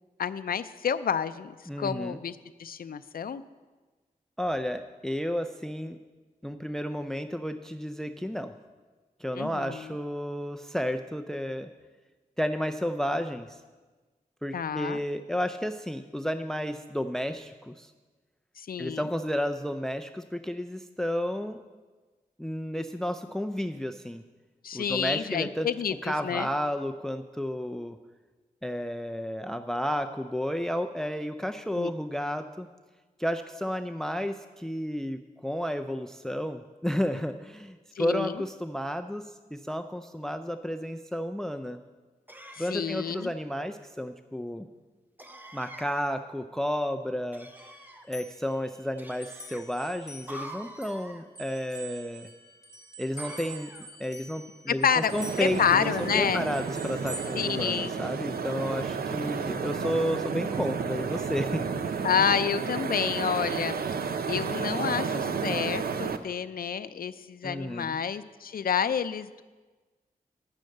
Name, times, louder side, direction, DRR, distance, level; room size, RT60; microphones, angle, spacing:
voice 1, 0.2-3.4 9.4-9.9 14.5-15.0 18.6-19.0 24.6-26.5 31.7-31.9 38.0-38.4 42.6-43.3 54.7-55.1 55.4-56.5 57.3-57.9 62.0-63.8 64.3-69.4, left 7 dB, 75° left, 12 dB, 0.5 m, -29 dB
voice 2, 1.7-2.2 4.4-6.0 6.4-8.5 9.2-11.7 12.4-13.6 14.4-17.9 18.8-21.6 22.4-24.2 24.7-25.7 26.0-28.0 28.6-32.7 33.2-41.8 42.6-44.7 45.5-47.5 48.1-52.3 53.0-53.7 54.0-61.6 67.4-68.0, equal, 5° left, 9 dB, 0.5 m, -32 dB
sound 1, 42.3-43.3 45.2-46.1 47.3-48.1 49.0-49.6 50.3-51.3 53.2-54.0 55.7-55.9, right 1 dB, 10° right, 0.9 m, -46 dB
sound 2, 47.6-51.0 51.4-58.3, right 1 dB, 20° left, 1.9 m, -46 dB
sound 3, 55.0-66.2, right 5 dB, 90° right, 0.6 m, -32 dB
10.5 x 6.3 x 7.8 m, 1.3 s
cardioid pair, 55°, 15 cm